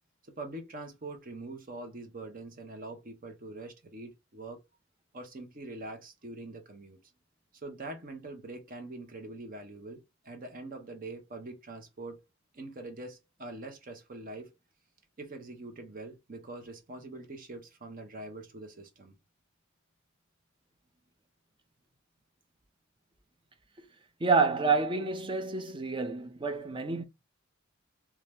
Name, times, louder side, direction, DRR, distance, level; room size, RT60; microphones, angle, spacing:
voice 1, 0.2-4.6 5.1-7.0 7.5-12.2 12.5-14.5 15.2-19.2, right 2 dB, 45° right, 0.9 m, -44 dB
voice 2, 24.2-27.0, right 4 dB, 25° right, 0.5 m, -28 dB
2.8 x 2.3 x 3.3 m
head